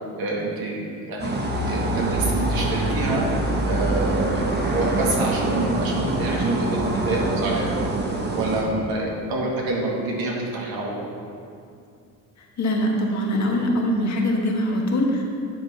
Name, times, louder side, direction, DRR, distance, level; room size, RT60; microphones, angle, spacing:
voice 1, 0.2-0.8 1.1-1.3 1.6-3.2 3.6-7.7 8.3-11.1, right 2 dB, 65° right, -3 dB, 2.0 m, -27 dB
sound 1, 1.2-8.6, right 2 dB, 25° right, 1.1 m, -24 dB
voice 2, 12.4-15.2, left 1 dB, 45° left, 0 dB, 1.5 m, -23 dB
9.7 x 3.7 x 5.7 m, 2.4 s
supercardioid pair, 80°, 38 cm